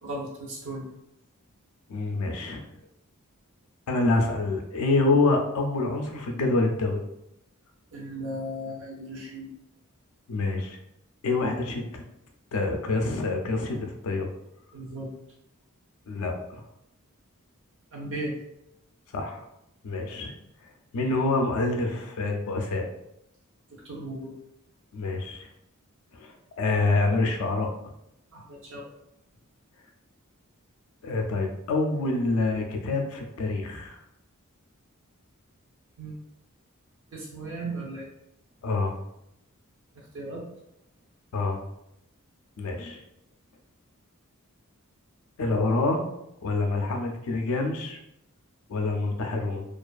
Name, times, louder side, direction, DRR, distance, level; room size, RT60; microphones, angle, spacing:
voice 1, 0.0-0.9 7.9-9.5 14.7-15.1 17.9-18.4 23.7-24.3 28.3-28.9 36.0-36.1 37.1-38.1 40.1-40.4, right 1 dB, 60° right, -3 dB, 0.6 m, -36 dB
voice 2, 1.9-2.7 3.9-7.0 10.3-10.8 11.2-12.0 12.5-14.3 16.1-16.6 19.1-19.4 19.8-20.3 20.9-22.9 24.9-25.5 26.1-27.7 31.0-34.0 38.6-39.0 41.3-41.6 42.6-43.0 45.4-46.0 46.4-48.0 48.7-49.7, left 3 dB, 70° left, 3 dB, 0.4 m, -26 dB
2.4 x 2.3 x 2.3 m, 0.82 s
head